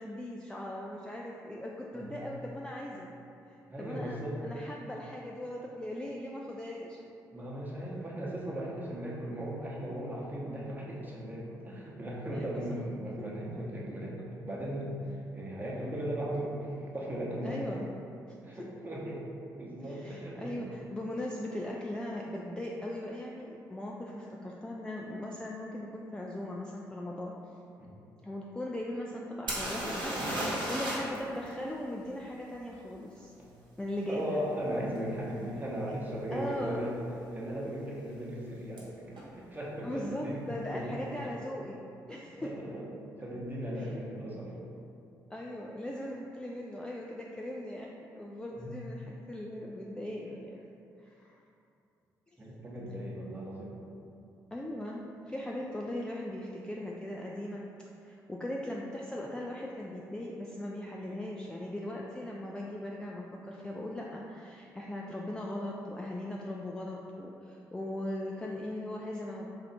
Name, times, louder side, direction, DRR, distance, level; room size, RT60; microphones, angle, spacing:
voice 1, 0.0-3.1 3.5-7.0 12.3-12.8 13.2-13.3 17.4-17.9 19.9-27.4 28.2-33.3 33.8-34.4 36.3-36.9 39.8-41.8 42.1-42.5 43.8-43.9 45.3-50.7 51.0-51.4 52.3-52.4 54.5-57.6 58.0-69.5, left 1 dB, 10° left, -2 dB, 0.3 m, -39 dB
voice 2, 1.9-2.3 3.7-4.4 7.3-14.2 14.4-17.8 18.4-19.2 19.6-20.7 27.8-28.0 33.4-33.5 34.1-36.9 37.3-39.0 39.4-40.5 40.7-41.2 42.4-42.9 43.2-44.6 48.6-48.7 52.4-53.7, right 1 dB, 20° right, -5 dB, 1.0 m, -37 dB
sound 1, 29.5-31.2 31.5-31.6 35.0-35.1 35.7-35.9 36.1-36.7 38.8-38.9 39.1-39.2, right 1 dB, 50° right, 1.1 m, -34 dB
3.1 x 2.6 x 4.1 m, 2.6 s
figure-of-eight pair, 40°, 10 cm